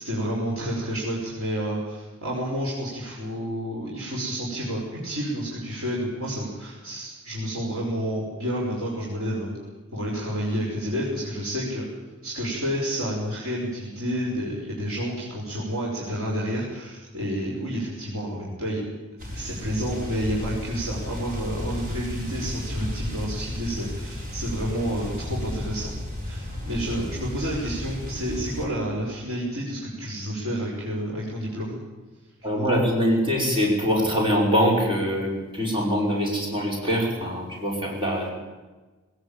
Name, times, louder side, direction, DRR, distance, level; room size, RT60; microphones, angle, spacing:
voice 1, 0.0-9.5 9.9-11.9 12.2-18.8 19.3-26.0 26.2-31.8, equal, 85° right, -5 dB, 5.5 m, -30 dB
sound 1, 19.2-28.7, left 1 dB, 40° right, 4.7 m, -33 dB
voice 2, 32.4-38.3, equal, 25° right, -1 dB, 5.7 m, -23 dB
19.0 x 18.5 x 8.9 m, 1.3 s
head